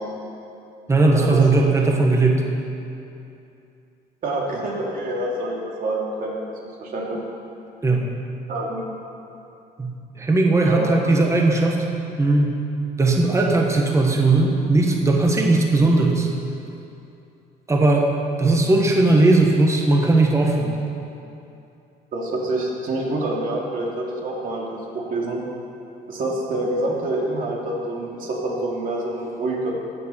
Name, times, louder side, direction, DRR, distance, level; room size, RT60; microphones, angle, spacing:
voice 1, 0.9-2.4 7.8-8.1 9.8-11.8 12.2-12.6 13.0-16.3 17.7-18.1 18.4-20.8, right 2 dB, 15° right, 1 dB, 1.4 m, -18 dB
voice 2, 4.2-6.3 6.8-7.2 8.5-8.9 10.6-10.9 22.1-25.4 26.1-29.7, right 2 dB, 55° right, -2 dB, 2.8 m, -26 dB
14.5 x 8.6 x 5.8 m, 2.7 s
cardioid pair, 110°, 17 cm